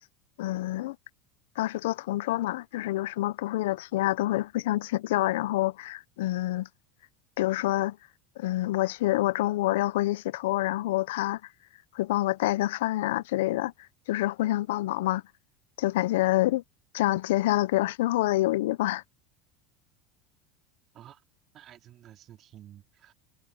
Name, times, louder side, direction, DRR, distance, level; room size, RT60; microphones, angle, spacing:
voice 1, 0.4-1.0 1.6-6.7 7.4-8.0 8.4-11.4 11.9-13.7 14.1-15.2 15.8-16.6 16.9-19.0, left 16 dB, 80° left, 0.6 m, -27 dB
voice 2, 21.5-23.1, right 12 dB, 45° right, 4.3 m, -51 dB
supercardioid pair, 105°, 0 cm